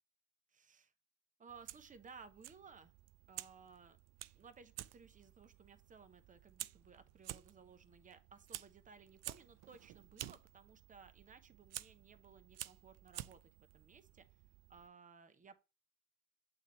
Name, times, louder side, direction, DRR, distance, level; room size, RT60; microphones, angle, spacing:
voice 1, 0.5-0.9 1.4-2.9 3.3-4.0 4.3-14.4 14.7-15.6, right 5 dB, 20° right, 0.9 m, -59 dB
Fire, 1.5-14.9, right 15 dB, 45° right, 0.4 m, -52 dB
8.7 x 4.0 x 3.2 m
hypercardioid pair, 80°, 37 cm